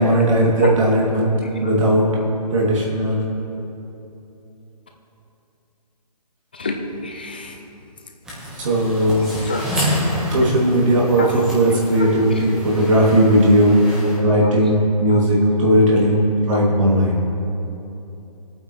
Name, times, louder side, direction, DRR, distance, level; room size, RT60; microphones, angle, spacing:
voice 1, 0.0-1.3 1.6-2.1 2.5-3.2 8.6-9.3 10.3-13.8 14.2-16.2 16.5-17.2, right 1 dB, 50° right, -3 dB, 2.8 m, -17 dB
voice 2, 6.5-7.6 9.4-9.8 11.2-11.5 14.3-14.5 15.1-15.3 16.5-16.7, left 3 dB, 15° left, 3 dB, 0.4 m, -27 dB
sound 1, 8.2-14.2, equal, 5° right, 1.3 m, -28 dB
20.5 x 8.8 x 3.3 m, 2.9 s
hypercardioid pair, 165°, 21 cm